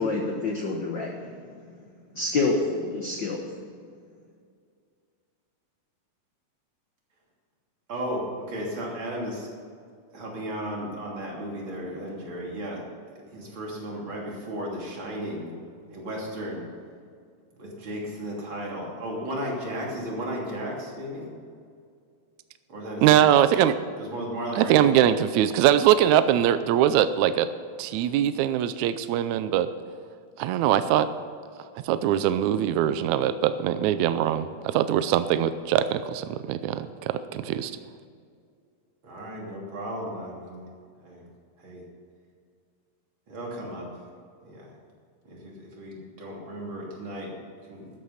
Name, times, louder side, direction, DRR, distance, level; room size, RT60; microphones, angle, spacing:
voice 1, 0.0-1.3 2.1-3.4, left 3 dB, 70° left, 1 dB, 1.1 m, -27 dB
voice 2, 7.9-9.5 10.1-12.8 13.1-15.5 15.9-16.6 17.6-21.3 22.7-23.4 24.0-24.9 39.0-40.7 41.0-41.2 41.6-41.8 43.3-43.9 44.4-44.8 45.2-47.3 47.6-47.9, equal, 35° right, -3 dB, 3.4 m, -35 dB
voice 3, 23.0-23.7 24.6-27.5 27.8-29.7 30.4-31.1 31.9-37.7, right 11 dB, 80° right, 12 dB, 1.7 m, -22 dB
13.0 x 11.0 x 5.6 m, 2.2 s
omnidirectional pair, 3.9 m